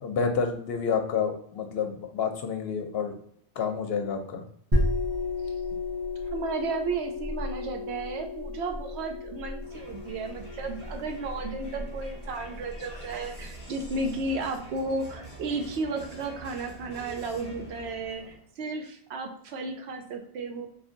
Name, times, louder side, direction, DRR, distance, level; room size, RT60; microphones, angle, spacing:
voice 1, 0.0-3.2 3.6-4.4, left 6 dB, 70° left, 5 dB, 0.8 m, -29 dB
sound 1, 4.7-14.1, left 2 dB, 25° right, 0.7 m, -33 dB
voice 2, 6.3-20.7, right 3 dB, 85° right, 4 dB, 0.9 m, -33 dB
Crowd, 9.6-18.5, right 1 dB, 10° left, 1.5 m, -46 dB
2.6 x 2.4 x 3.8 m, 0.65 s
omnidirectional pair, 1.1 m